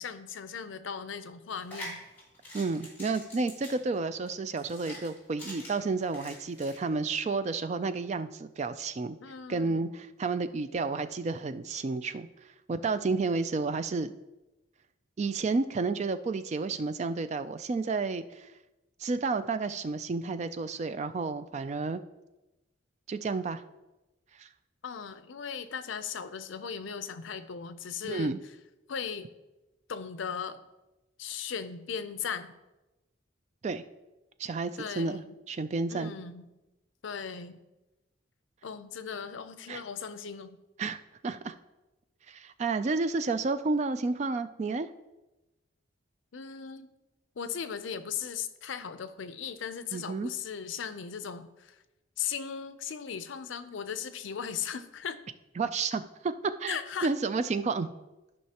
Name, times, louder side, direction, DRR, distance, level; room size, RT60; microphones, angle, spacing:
voice 1, 0.0-2.0 9.2-10.0 24.8-28.3 28.9-29.3 29.9-30.6 31.2-32.5 34.8-35.3 35.9-36.5 37.0-37.6 38.6-40.6 46.3-46.9 47.4-51.8 52.2-55.2 56.7-57.1, left 7 dB, 80° left, 12 dB, 0.5 m, -37 dB
sound 1, 1.5-6.8, left 1 dB, 10° left, 2.8 m, -45 dB
voice 2, 2.5-9.2 9.5-12.3 12.7-14.1 15.2-18.5 19.0-22.0 23.1-23.6 24.4-24.5 28.0-28.4 33.6-33.8 34.4-36.1 39.7-39.8 40.8-41.0 41.2-41.6 42.3-44.9 49.9-50.3 55.6-56.3 56.6-56.8 57.0-57.9, right 4 dB, 35° right, 12 dB, 0.3 m, -31 dB
12.5 x 5.5 x 2.9 m, 1.0 s
head